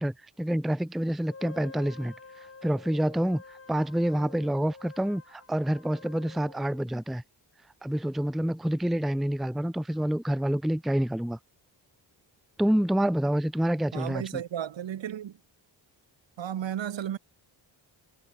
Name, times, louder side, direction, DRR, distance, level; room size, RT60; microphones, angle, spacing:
voice 1, 0.0-3.4 3.7-7.2 7.8-11.4 12.6-14.2, right 1 dB, ahead, 0.6 m, -27 dB
Wind instrument woodwind instrument, 1.3-6.9, left 4 dB, 30° left, 6.5 m, -49 dB
voice 2, 13.9-15.4 16.4-17.2, right 10 dB, 70° right, 2.9 m, -33 dB
cardioid pair, 95°, 45 cm